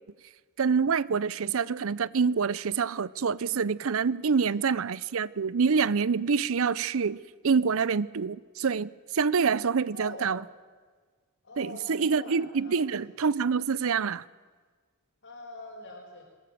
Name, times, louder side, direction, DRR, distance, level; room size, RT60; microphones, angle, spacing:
voice 1, 0.6-10.4 11.6-14.3, right 5 dB, 65° right, 0.6 m, -26 dB
voice 2, 9.9-10.4 11.4-12.8 15.2-16.2, left 2 dB, 60° left, 4.5 m, -44 dB
23.0 x 21.0 x 7.7 m
head